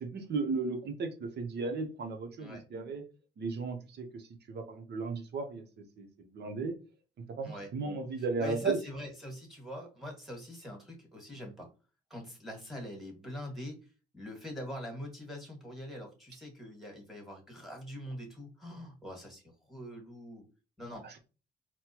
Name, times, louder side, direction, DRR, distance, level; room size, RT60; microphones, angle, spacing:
voice 1, 0.0-3.0 3.4-4.2 4.5-5.6 6.0-6.7 7.4-8.8 21.0-21.2, right 4 dB, 55° right, 5 dB, 0.9 m, -35 dB
voice 2, 8.2-11.7 12.1-13.8 14.1-20.4 20.8-21.2, left 1 dB, ahead, 1 dB, 1.8 m, -44 dB
4.2 x 2.2 x 2.9 m, 0.33 s
cardioid pair, 90°, 20 cm